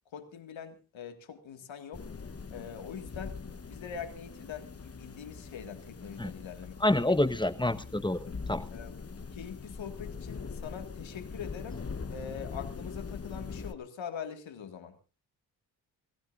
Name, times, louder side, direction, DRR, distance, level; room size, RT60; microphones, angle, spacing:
voice 1, 0.1-2.1 2.5-3.4 3.6-7.2 8.7-9.0 9.3-11.8 12.1-15.0, left 7 dB, 75° left, 7 dB, 2.1 m, -43 dB
sound 1, 1.9-13.7, left 5 dB, 30° left, 1.1 m, -42 dB
voice 2, 6.8-8.6, left 1 dB, 10° left, 12 dB, 1.2 m, -28 dB
27.0 x 15.0 x 2.6 m, 0.31 s
supercardioid pair, 40°, 46 cm